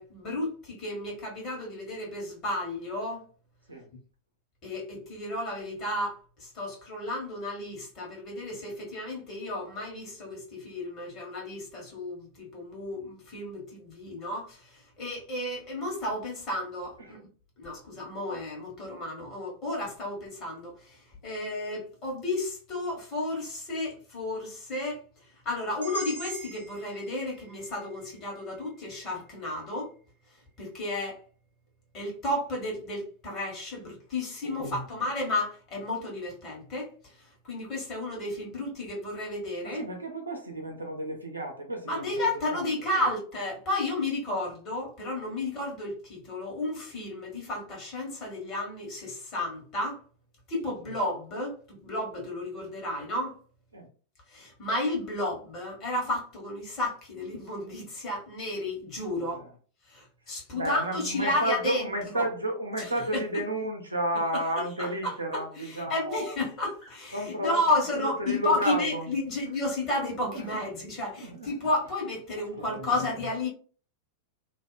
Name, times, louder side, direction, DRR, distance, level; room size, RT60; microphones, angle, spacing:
voice 1, 0.0-3.2 4.6-17.2 17.6-25.0 25.4-29.9 30.6-31.2 31.9-37.1 37.4-39.8 41.9-50.0 50.5-53.4 54.3-59.4 59.9-61.9 62.1-62.2 62.8-63.4 64.3-64.4 64.8-73.5, left 1 dB, 35° left, 1.4 m, -32 dB
sound 1, 25.8-29.8, right 2 dB, 75° left, 0.8 m, -44 dB
voice 2, 34.4-34.8 39.6-42.6 42.9-43.0 53.7-53.9 59.2-59.4 60.5-66.4 67.1-67.6 67.9-69.1 70.3-70.5 71.2-71.7 72.5-73.0, right 1 dB, 80° right, 0.6 m, -32 dB
2.7 x 2.1 x 2.4 m
figure-of-eight pair, 90°, 0 cm